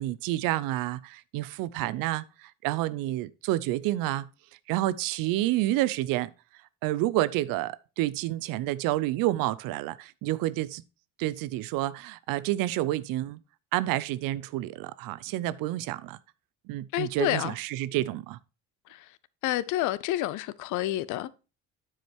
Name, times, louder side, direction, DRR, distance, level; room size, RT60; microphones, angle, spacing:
voice 1, 0.0-4.3 4.7-6.3 6.8-10.8 11.2-13.4 13.7-16.2 16.7-18.4, right 15 dB, 80° right, 0.6 m, -29 dB
voice 2, 16.9-17.5 19.4-21.3, left 14 dB, 65° left, 0.6 m, -28 dB
9.5 x 5.0 x 4.4 m
cardioid pair, 155°, 33 cm